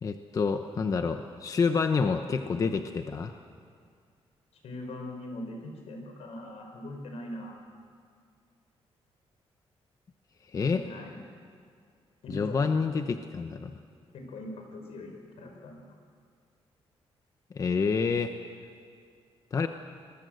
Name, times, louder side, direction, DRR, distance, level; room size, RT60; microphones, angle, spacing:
voice 1, 0.0-3.3 10.5-10.8 12.3-13.8 17.5-18.3 19.5-19.7, left 5 dB, 35° left, 7 dB, 0.9 m, -28 dB
voice 2, 4.5-7.6 10.6-11.1 12.2-12.6 14.1-15.8, left 1 dB, 80° left, 3 dB, 5.1 m, -41 dB
26.0 x 20.5 x 8.0 m, 2.1 s
wide cardioid pair, 170°, 10 cm